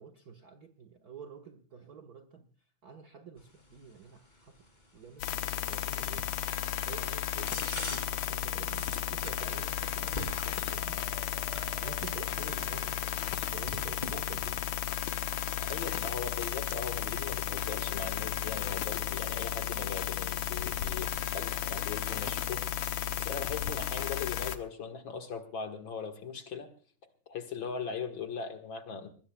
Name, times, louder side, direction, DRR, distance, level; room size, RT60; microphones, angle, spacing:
voice 1, 0.0-2.5 2.8-4.6 4.9-5.3 5.7-6.4 6.9-11.0 11.8-13.1 13.5-14.6, right 6 dB, 85° right, 0.8 m, -48 dB
sound 1, 3.4-19.3, left 1 dB, 15° left, 2.6 m, -47 dB
sound 2, 5.2-24.6, left 10 dB, 75° left, 2.3 m, -34 dB
Marimba xylophone, 10.7-13.5, right 1 dB, 55° right, 5.1 m, -53 dB
voice 2, 15.6-22.6 23.2-26.7 27.3-29.1, left 6 dB, 50° left, 2.0 m, -39 dB
21.5 x 20.5 x 2.3 m
omnidirectional pair, 3.3 m